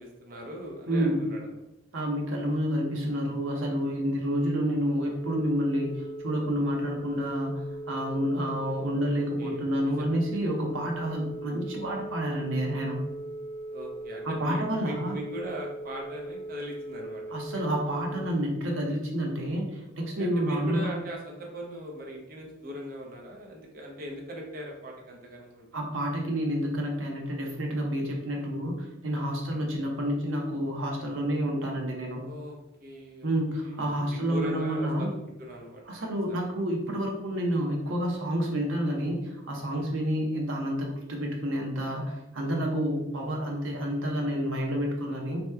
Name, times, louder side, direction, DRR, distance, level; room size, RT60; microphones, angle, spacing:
voice 1, 0.0-1.4 9.1-9.6 10.0-10.2 13.7-17.2 20.0-25.7 32.2-33.4 33.7-36.4 39.7-39.9, equal, 45° right, 0 dB, 0.6 m, -40 dB
voice 2, 0.9-1.2 1.9-13.0 14.2-15.2 17.3-20.9 25.7-32.2 33.2-35.1 35.9-45.4, equal, 85° right, 0 dB, 0.7 m, -29 dB
Telephone, 5.2-18.3, right 2 dB, 20° left, 0.7 m, -39 dB
2.9 x 2.1 x 3.3 m, 0.90 s
head